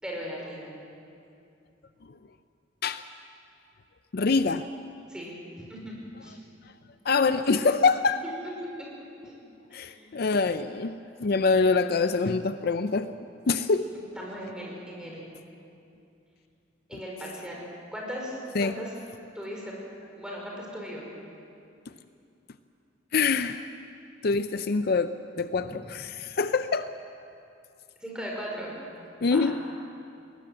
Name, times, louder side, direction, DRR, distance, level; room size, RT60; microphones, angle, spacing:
voice 1, 0.0-0.7 5.1-5.4 5.7-5.9 6.2-6.4 8.8-8.9 9.3-9.4 9.7-10.1 14.2-15.3 16.9-17.6 17.9-18.9 19.4-19.7 20.2-21.0 25.6-25.7 28.0-28.8 29.2-29.5, equal, 5° right, -3 dB, 5.2 m, -38 dB
voice 2, 4.1-4.7 7.0-8.2 9.7-13.1 13.5-13.9 16.9-17.0 18.5-18.7 23.1-23.7 24.2-26.9 29.2-29.6, left 4 dB, 55° left, 11 dB, 0.5 m, -25 dB
21.0 x 18.5 x 7.7 m, 2.6 s
head